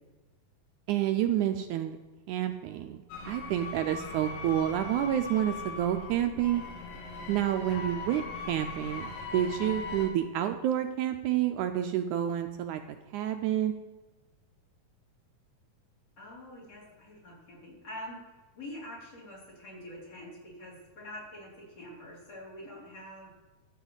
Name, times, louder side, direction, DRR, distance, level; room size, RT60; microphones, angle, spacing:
voice 1, 0.9-2.0 2.3-6.6 7.3-12.8 13.1-13.7, right 11 dB, 80° right, 7 dB, 1.8 m, -29 dB
sound 1, 3.1-10.1, left 3 dB, 90° left, 3.6 m, -40 dB
voice 2, 16.2-18.2 18.5-23.3, left 1 dB, 45° left, -6 dB, 4.7 m, -45 dB
13.0 x 5.0 x 8.1 m, 1.2 s
omnidirectional pair, 4.0 m